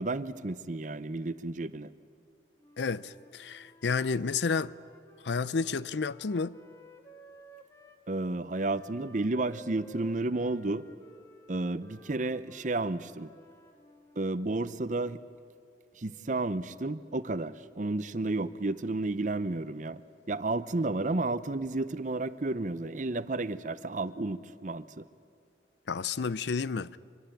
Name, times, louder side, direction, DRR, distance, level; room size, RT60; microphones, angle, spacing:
voice 1, 0.0-1.9 8.1-10.8 11.5-13.3 14.2-15.2 16.0-20.0 20.3-25.0, right 2 dB, 45° right, 0.7 m, -32 dB
Wind instrument woodwind instrument, 2.6-8.0 8.5-14.4, equal, 15° left, 1.6 m, -55 dB
voice 2, 2.8-4.7 5.2-6.6 25.9-27.0, left 5 dB, 70° left, 0.5 m, -31 dB
25.0 x 21.5 x 9.1 m
head